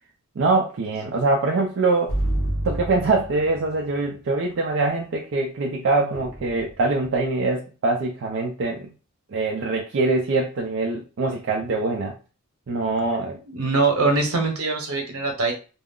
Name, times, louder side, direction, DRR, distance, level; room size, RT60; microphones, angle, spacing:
voice 1, 0.4-2.2 2.6-8.9 9.3-12.1 12.7-13.4, right 3 dB, 60° right, 0 dB, 0.4 m, -23 dB
sound 1, 2.1-3.9 6.1-7.1, right 1 dB, 65° left, 0.8 m, -28 dB
voice 2, 13.5-15.5, right 3 dB, 80° right, 2 dB, 0.9 m, -22 dB
2.3 x 2.0 x 3.6 m, 0.35 s
head